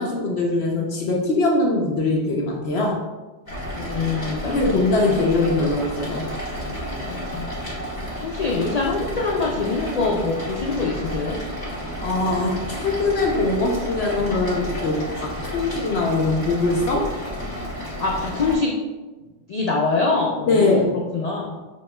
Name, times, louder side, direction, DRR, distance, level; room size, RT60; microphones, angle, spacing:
voice 1, 0.0-3.0 4.5-6.3 12.0-17.1 20.5-20.9, left 2 dB, 65° left, -1 dB, 0.8 m, -22 dB
sound 1, 3.5-18.6, equal, 35° left, 1.5 m, -31 dB
voice 2, 3.7-5.2 5.5-5.6 7.0-7.5 8.2-11.4 18.0-18.7 19.5-20.8 21.1-21.6, left 3 dB, 90° left, -1 dB, 0.3 m, -25 dB
6.1 x 3.0 x 2.2 m, 1.2 s
omnidirectional pair, 1.3 m